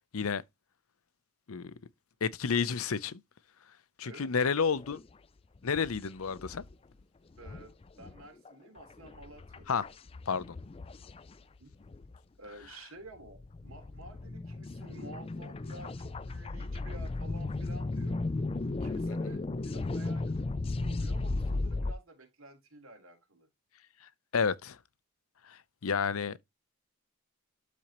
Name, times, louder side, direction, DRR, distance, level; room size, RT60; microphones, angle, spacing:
voice 1, 2.2-3.2 4.0-5.0 5.6-6.6 9.7-9.8 10.3-10.6 19.1-19.3 24.3-24.8 25.5-26.4, left 6 dB, 85° left, 0.6 m, -31 dB
sound 1, 4.8-5.1 5.6-6.7 7.0-7.1 7.3-12.2 12.6-12.7 13.2-21.9, left 2 dB, 25° left, 0.3 m, -36 dB
voice 2, 7.4-9.9 11.6-11.7 12.4-18.3 18.8-23.5, right 1 dB, 80° right, 3.4 m, -51 dB
12.0 x 4.2 x 3.0 m
head